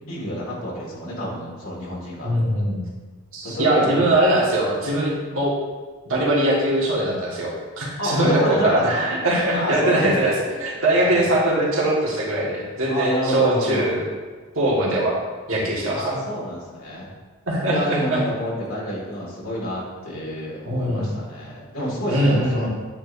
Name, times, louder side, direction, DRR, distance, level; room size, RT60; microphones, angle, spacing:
voice 1, 0.0-2.3 3.4-4.1 8.0-9.1 9.5-10.3 10.9-11.3 12.9-13.9 15.9-17.1 17.7-22.7, equal, 70° left, -5 dB, 2.0 m, -28 dB
voice 2, 2.2-2.8 3.3-5.5 6.0-7.5 7.8-14.1 14.5-15.2 15.5-16.2 17.5-18.2 20.6-21.1 22.1-22.7, right 1 dB, 65° right, -4 dB, 1.6 m, -21 dB
8.7 x 4.9 x 2.6 m, 1.4 s
head